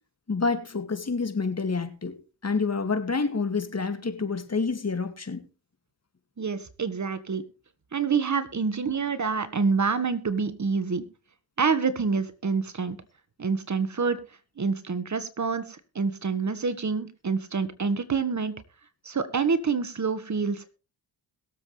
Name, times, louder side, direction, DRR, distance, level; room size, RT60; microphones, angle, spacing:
voice 1, 0.3-2.2 2.4-5.4, left 4 dB, 35° left, 8 dB, 2.4 m, -28 dB
voice 2, 6.4-7.4 7.9-11.0 11.6-13.0 13.4-14.2 14.6-18.5 19.0-20.7, right 5 dB, 40° right, 13 dB, 1.5 m, -27 dB
22.0 x 7.6 x 3.3 m, 0.33 s
hypercardioid pair, 40°, 44 cm